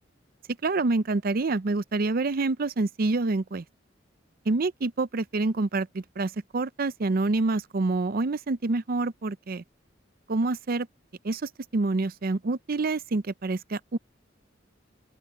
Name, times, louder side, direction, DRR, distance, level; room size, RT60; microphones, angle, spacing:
voice 1, 0.6-3.6 4.5-9.6 10.3-10.9 11.2-14.0, right 3 dB, 50° right, 0.6 m, -27 dB
open air
head